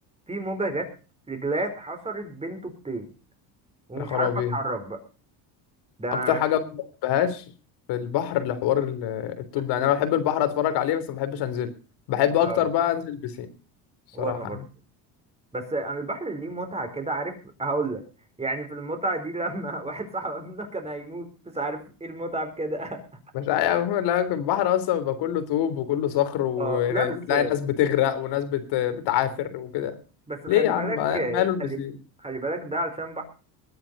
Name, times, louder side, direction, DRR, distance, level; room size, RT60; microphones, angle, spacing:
voice 1, 0.3-0.9 1.3-3.1 3.9-5.0 6.0-6.4 9.8-9.9 12.4-12.7 14.1-14.7 15.5-18.0 18.4-23.0 26.6-27.6 30.3-31.8 32.2-33.2, right 2 dB, 15° right, 6 dB, 4.4 m, -31 dB
voice 2, 4.0-4.5 6.3-7.4 7.9-11.7 12.1-13.5 14.2-14.4 23.3-30.0 30.5-31.9, left 10 dB, 70° left, 11 dB, 3.5 m, -25 dB
21.0 x 9.0 x 5.4 m, 0.35 s
cardioid pair, 130°, 42 cm